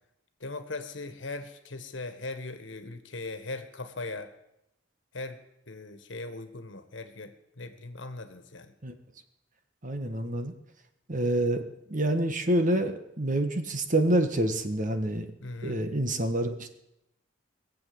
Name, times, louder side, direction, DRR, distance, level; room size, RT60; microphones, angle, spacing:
voice 1, 0.4-4.3 5.1-5.4 5.7-8.7 15.4-15.8, left 3 dB, 75° left, 9 dB, 1.5 m, -39 dB
voice 2, 9.8-10.5 11.1-11.6 11.9-15.3 15.6-16.7, right 1 dB, 45° right, 8 dB, 1.5 m, -27 dB
21.0 x 7.8 x 7.8 m, 0.85 s
head